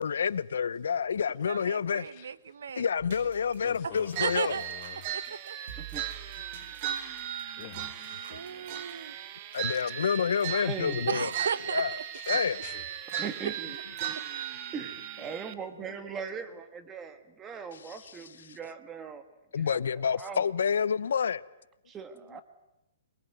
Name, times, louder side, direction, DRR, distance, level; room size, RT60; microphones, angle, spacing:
voice 1, 0.0-2.1 2.8-4.6 9.5-11.3 11.7-12.0 12.3-12.6 17.9-18.0 19.5-21.4, left 7 dB, 90° left, 0.9 m, -28 dB
voice 2, 1.5-2.9 3.8-4.6 5.1-5.6 8.3-9.1 11.1-12.0, right 6 dB, 85° right, 1.1 m, -35 dB
sound 1, 3.0-8.9, right 7 dB, 65° right, 6.0 m, -49 dB
voice 3, 3.6-5.0 7.6-8.7 12.1-12.3 12.6-12.8, left 13 dB, 35° left, 1.7 m, -47 dB
sound 2, 4.1-15.5, right 10 dB, 35° right, 1.4 m, -37 dB
voice 4, 10.5-11.1 13.2-13.8 14.7-19.2 19.6-20.4 21.9-22.4, right 6 dB, 15° right, 1.7 m, -40 dB
23.5 x 22.5 x 9.3 m
hypercardioid pair, 165°, 0 cm